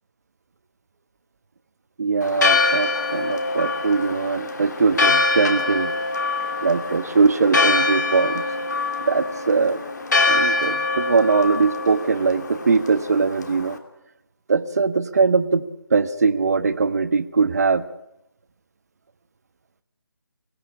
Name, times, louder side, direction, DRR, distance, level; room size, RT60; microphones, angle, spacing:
voice 1, 2.0-5.9 6.6-8.4 9.1-9.8 10.3-13.8 14.5-15.6 15.9-17.8, right 4 dB, 40° right, 11 dB, 1.2 m, -21 dB
Church bell, 2.2-13.8, left 3 dB, 50° left, 2.8 m, -24 dB
23.5 x 18.0 x 10.0 m, 0.87 s
figure-of-eight pair, 155°, 12 cm